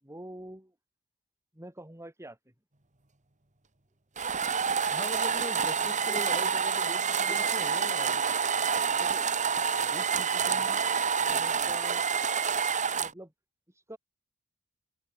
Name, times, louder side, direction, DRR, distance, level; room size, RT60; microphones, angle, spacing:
voice 1, 0.0-0.7 1.5-2.4 5.0-5.1 5.7-6.4 7.3-7.4 8.6-9.3 9.8-10.8 11.2-12.1 13.0-13.3 13.7-14.0, right 1 dB, 15° right, 7.3 m, -46 dB
sound 1, 4.2-13.1, right 6 dB, 35° right, 2.4 m, -28 dB
voice 2, 4.8-8.3 10.5-10.7, left 1 dB, 20° left, 4.8 m, -41 dB
head